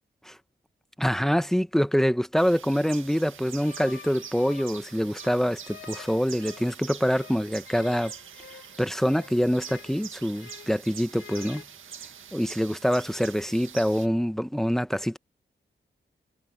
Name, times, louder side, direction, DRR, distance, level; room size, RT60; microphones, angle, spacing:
voice 1, 1.0-8.1 8.8-11.6 12.3-15.2, equal, ahead, 1.6 m, -25 dB
sound 1, 2.4-14.1, right 8 dB, 75° right, 1.9 m, -45 dB
sound 2, 3.6-6.8 7.1-10.8 11.1-11.6, left 7 dB, 75° left, 3.4 m, -48 dB
supercardioid pair, 45°, 20 cm